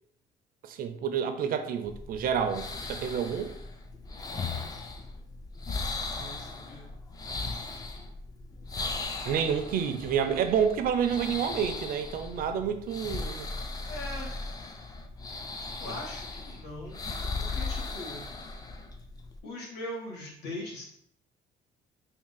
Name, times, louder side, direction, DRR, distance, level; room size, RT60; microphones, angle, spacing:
voice 1, 0.6-3.5 9.3-13.5, right 7 dB, 60° right, 8 dB, 0.5 m, -29 dB
sound 1, 1.8-19.4, left 3 dB, 20° left, 0.4 m, -38 dB
voice 2, 6.1-6.9 13.9-14.3 15.8-17.1 17.4-18.2 19.4-20.8, left 1 dB, 85° left, -3 dB, 1.4 m, -40 dB
3.5 x 2.3 x 3.9 m, 0.71 s
cardioid pair, 110°, 17 cm